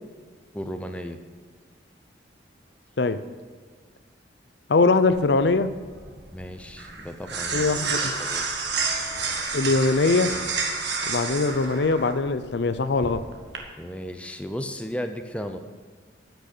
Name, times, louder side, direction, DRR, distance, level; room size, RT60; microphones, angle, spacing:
voice 1, 0.5-1.2 6.3-7.7 8.2-8.5 13.8-15.6, equal, 5° left, 6 dB, 0.6 m, -35 dB
voice 2, 4.7-5.7 7.5-8.1 9.5-10.3 11.1-13.2, left 3 dB, 65° left, 12 dB, 0.6 m, -22 dB
sound 1, 5.1-13.6, right 4 dB, 65° right, 1.6 m, -30 dB
13.5 x 6.2 x 6.8 m, 1.5 s
head